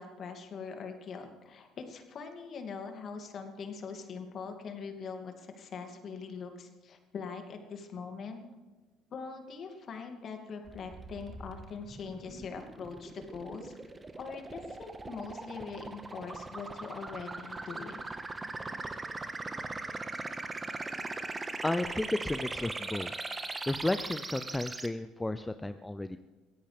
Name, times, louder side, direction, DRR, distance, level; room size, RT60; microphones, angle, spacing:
voice 1, 0.0-8.4 9.1-13.8 14.2-18.0, left 5 dB, 50° left, 5 dB, 2.6 m, -42 dB
sound 1, 10.7-24.9, right 3 dB, 25° right, 1.5 m, -40 dB
voice 2, 21.6-23.1 23.7-26.2, left 2 dB, 10° left, 11 dB, 0.7 m, -33 dB
23.5 x 16.5 x 3.6 m, 1.2 s
hypercardioid pair, 55°, 0 cm